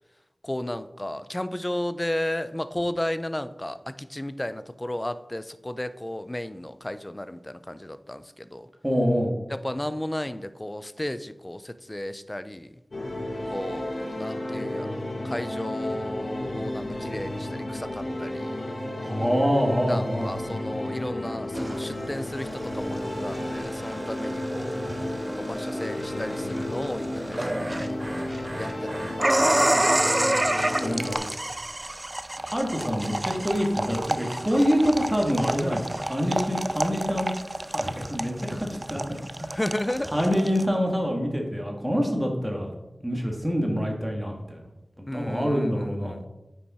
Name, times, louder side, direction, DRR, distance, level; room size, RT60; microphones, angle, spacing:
voice 1, 0.4-8.7 9.5-12.7 13.5-18.6 19.9-24.8 25.3-27.9 28.6-29.9 39.6-40.1 45.1-46.3, left 1 dB, 20° left, 12 dB, 0.5 m, -34 dB
voice 2, 8.8-9.3 19.0-20.4 24.9-25.0 30.8-31.2 32.4-37.4 37.6-39.0 39.4-39.6 40.1-42.7 43.0-44.6 45.0-46.3, equal, 10° right, 1 dB, 2.0 m, -26 dB
sound 1, 12.9-31.2, left 1 dB, 70° left, 1.9 m, -32 dB
sound 2, 21.5-40.7, right 1 dB, 30° right, 0.5 m, -29 dB
9.5 x 5.6 x 4.4 m, 0.99 s
wide cardioid pair, 50°, 0 cm